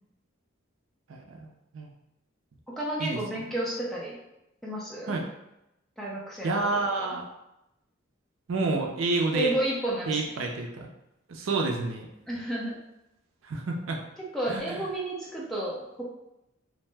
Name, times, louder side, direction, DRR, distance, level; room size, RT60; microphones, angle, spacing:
voice 1, 1.1-1.9 3.0-3.2 5.1-5.2 6.4-7.3 8.5-9.6 10.1-10.9 11.3-12.1 13.4-14.0 14.5-14.8, right 3 dB, 70° right, 1 dB, 0.4 m, -29 dB
voice 2, 2.8-4.2 4.6-5.2 6.0-6.7 7.0-7.2 9.3-10.2 12.3-12.8 14.2-16.0, right 1 dB, ahead, -6 dB, 0.6 m, -31 dB
2.7 x 2.1 x 3.3 m, 0.88 s
head